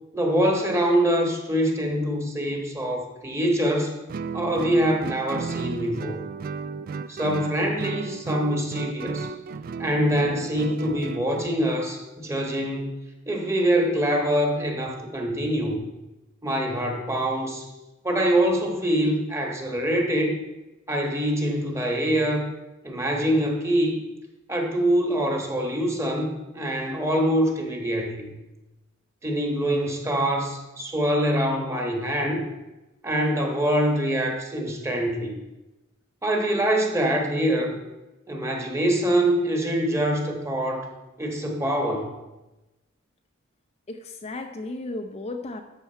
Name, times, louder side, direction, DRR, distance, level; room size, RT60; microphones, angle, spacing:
voice 1, 0.1-3.9 4.3-6.2 7.1-9.3 9.8-13.0 13.3-15.8 16.4-17.7 18.0-20.4 20.9-22.5 22.8-24.0 24.5-28.3 29.2-32.5 33.0-35.4 36.2-37.7 38.3-40.9 41.2-42.1, equal, 15° right, 2 dB, 1.2 m, -24 dB
Guitar, 4.1-11.6, right 5 dB, 45° right, 0.3 m, -34 dB
voice 2, 43.9-45.6, left 2 dB, 30° left, 5 dB, 0.5 m, -34 dB
13.0 x 5.9 x 4.4 m, 1.0 s
head